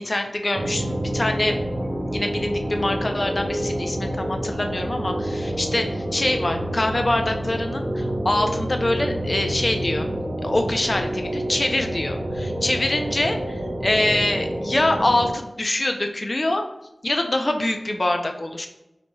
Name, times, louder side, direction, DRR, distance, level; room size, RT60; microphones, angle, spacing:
voice 1, 0.0-10.1 10.4-16.6 17.0-18.7, left 1 dB, 40° left, 5 dB, 0.4 m, -25 dB
sound 1, 0.5-15.3, equal, 45° right, 0.5 m, -28 dB
4.0 x 3.0 x 2.2 m, 0.91 s
wide cardioid pair, 70°, 0 cm